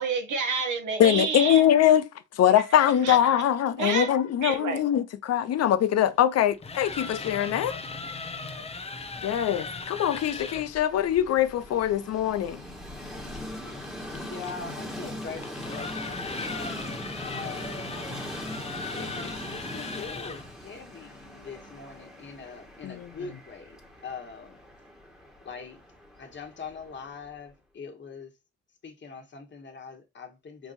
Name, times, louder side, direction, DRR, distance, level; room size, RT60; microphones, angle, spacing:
voice 1, 0.0-1.7 2.5-2.6 3.0-3.2 3.8-4.1 4.4-4.8, right 5 dB, 75° right, 1.4 m, -29 dB
voice 2, 1.0-2.1 2.4-7.8 9.2-12.6 22.8-23.1, left 10 dB, 55° left, 0.6 m, -23 dB
sound 1, 6.5-10.7 13.3-20.5, left 3 dB, 20° left, 0.7 m, -38 dB
Train, 9.2-27.3, left 1 dB, ahead, 1.6 m, -41 dB
voice 3, 13.6-17.9 18.9-23.8 24.0-24.6 25.4-25.8 26.2-28.3 28.8-30.7, left 5 dB, 40° left, 1.5 m, -42 dB
6.0 x 2.7 x 2.5 m
cardioid pair, 90°, 30 cm